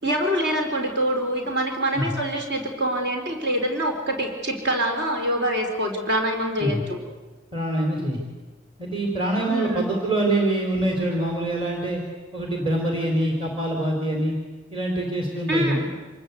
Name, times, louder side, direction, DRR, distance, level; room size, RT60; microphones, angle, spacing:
voice 1, 0.0-7.0 9.5-9.9 15.5-15.8, right 1 dB, 60° right, 3 dB, 4.1 m, -25 dB
voice 2, 7.5-8.2 8.8-12.0 12.3-14.4 14.7-15.8, right 1 dB, 30° right, 1 dB, 3.9 m, -25 dB
27.0 x 20.5 x 8.2 m, 1.3 s
head